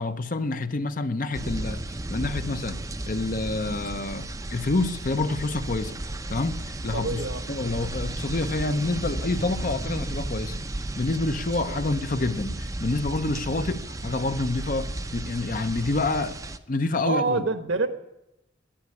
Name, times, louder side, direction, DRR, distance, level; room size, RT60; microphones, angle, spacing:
voice 1, 0.0-6.0 6.3-16.4 16.7-17.5, left 2 dB, 45° left, 0.7 m, -28 dB
sound 1, 1.3-16.6, right 1 dB, 15° right, 0.5 m, -34 dB
voice 2, 6.9-7.4 11.7-11.8 17.0-17.9, right 3 dB, 70° right, 1.1 m, -26 dB
11.5 x 9.8 x 9.6 m
head